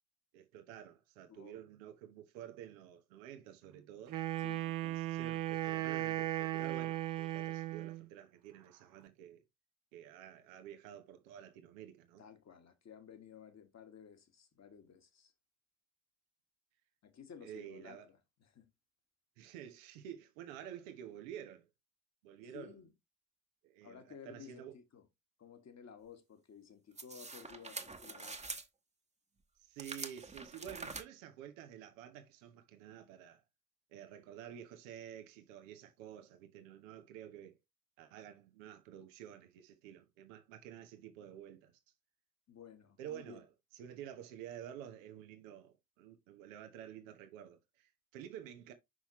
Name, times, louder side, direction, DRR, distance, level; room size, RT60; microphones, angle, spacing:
voice 1, 0.3-4.2 4.8-9.4 9.9-12.2 17.4-18.1 19.4-21.7 22.2-22.8 23.6-24.7 29.6-33.4 33.9-37.6 38.0-41.8 43.0-43.5 43.7-48.7, right 10 dB, 75° right, 1.0 m, -50 dB
voice 2, 1.3-1.6 4.4-5.0 12.2-15.3 17.0-18.7 22.5-22.9 23.8-25.1 25.4-28.5 42.5-43.4, left 7 dB, 40° left, 1.7 m, -55 dB
Wind instrument woodwind instrument, 4.1-8.1, right 15 dB, 50° right, 0.9 m, -37 dB
sound 1, 27.0-28.7 29.8-31.0, right 3 dB, 15° right, 1.2 m, -45 dB
6.2 x 5.7 x 3.1 m
figure-of-eight pair, 50°, 40 cm